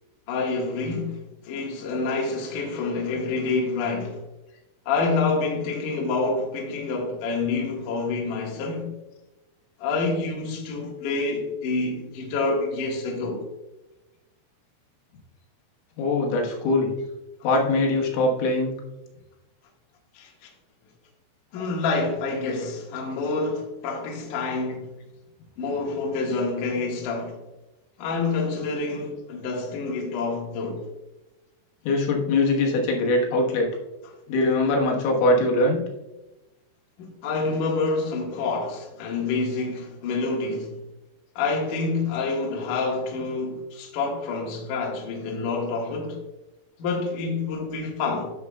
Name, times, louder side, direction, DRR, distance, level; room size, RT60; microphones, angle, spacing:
voice 1, 0.3-4.2 4.9-8.9 9.8-13.4 20.1-20.5 21.5-24.9 25.6-27.4 28.0-30.8 37.0-40.7 41.4-46.2 46.8-48.3, left 3 dB, 60° left, 2.3 m, -27 dB
voice 2, 16.0-16.9 17.4-18.7 21.6-21.7 31.9-33.7 34.3-35.8, left 2 dB, 80° left, 3.7 m, -22 dB
12.5 x 6.9 x 2.3 m
omnidirectional pair, 5.6 m